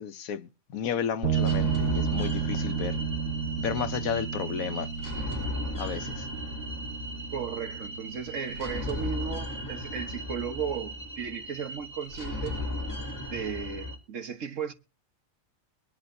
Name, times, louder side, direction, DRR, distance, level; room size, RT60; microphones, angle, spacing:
voice 1, 0.0-3.0 3.6-4.9 5.8-6.3, left 8 dB, 85° left, 1.3 m, -33 dB
sound 1, 1.2-10.7, right 7 dB, 85° right, 3.0 m, -33 dB
sound 2, 1.3-14.0, left 1 dB, 15° left, 3.0 m, -36 dB
voice 2, 7.3-12.6 13.3-14.7, right 7 dB, 65° right, 1.5 m, -35 dB
22.5 x 10.5 x 2.6 m
omnidirectional pair, 1.4 m